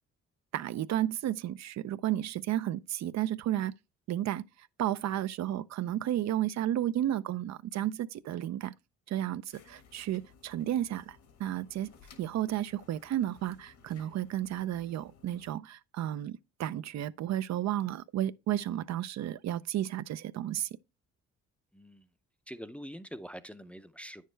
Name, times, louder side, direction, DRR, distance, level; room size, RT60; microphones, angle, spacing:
voice 1, 0.5-3.7 4.1-4.4 4.8-8.7 9.1-9.4 9.7-11.9 12.2-20.7, right 12 dB, 65° right, 0.5 m, -32 dB
sound 1, 9.5-15.5, left 6 dB, 75° left, 1.6 m, -59 dB
voice 2, 21.7-22.1 22.5-24.3, equal, 5° left, 0.5 m, -45 dB
9.1 x 6.5 x 3.3 m
cardioid pair, 90°, 30 cm